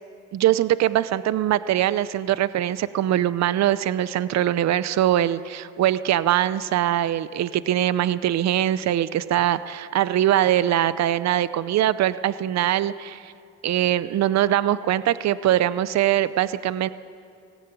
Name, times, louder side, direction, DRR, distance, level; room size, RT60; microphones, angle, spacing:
voice 1, 0.3-13.3 13.6-16.9, right 12 dB, 60° right, 15 dB, 0.7 m, -22 dB
18.5 x 16.5 x 9.1 m, 2.4 s
cardioid pair, 90°, 30 cm